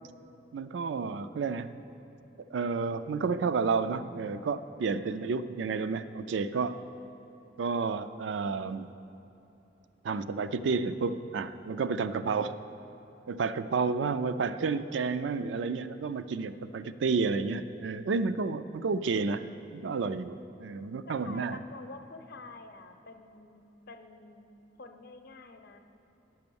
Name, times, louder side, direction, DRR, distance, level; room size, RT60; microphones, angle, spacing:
voice 1, 0.5-1.7 2.5-6.8 7.6-8.9 10.0-12.6 13.3-19.4 19.7-21.6, right 4 dB, 80° right, 12 dB, 0.4 m, -31 dB
voice 2, 13.7-14.6 21.1-25.8, left 3 dB, 60° left, 7 dB, 0.7 m, -49 dB
9.4 x 6.1 x 6.9 m, 3.0 s
head